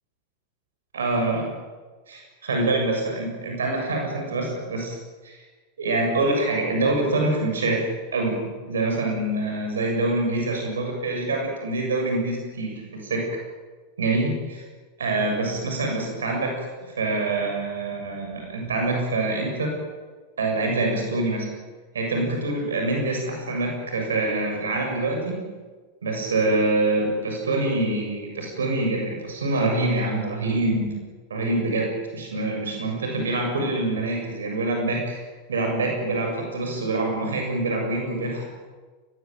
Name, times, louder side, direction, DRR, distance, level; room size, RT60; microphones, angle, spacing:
voice 1, 0.9-1.5 2.1-5.0 5.2-5.4 5.8-13.3 14.0-14.6 15.0-16.7 17.0-19.7 20.4-21.5 21.9-25.5 26.0-30.9 31.3-35.2 35.5-38.5, right 2 dB, 75° right, 2 dB, 7.3 m, -25 dB
23.5 x 20.0 x 9.3 m, 1.4 s
figure-of-eight pair, 90°, 0 cm